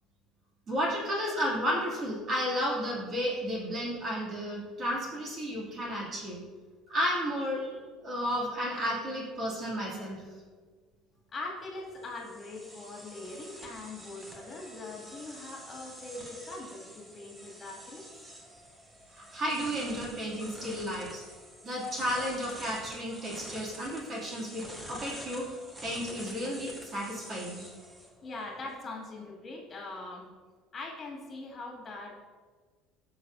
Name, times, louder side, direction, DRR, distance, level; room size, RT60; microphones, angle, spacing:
voice 1, 0.7-6.4 6.9-7.7 8.0-10.2 19.1-21.2 21.6-25.6 25.8-27.7, equal, 30° right, -4 dB, 2.9 m, -32 dB
voice 2, 11.3-18.0 28.2-30.3 30.7-32.1, left 2 dB, 25° left, -2 dB, 2.6 m, -42 dB
sound 1, 11.6-28.8, equal, 10° right, 1.5 m, -48 dB
17.5 x 6.7 x 2.8 m, 1.5 s
cardioid pair, 155°, 0 cm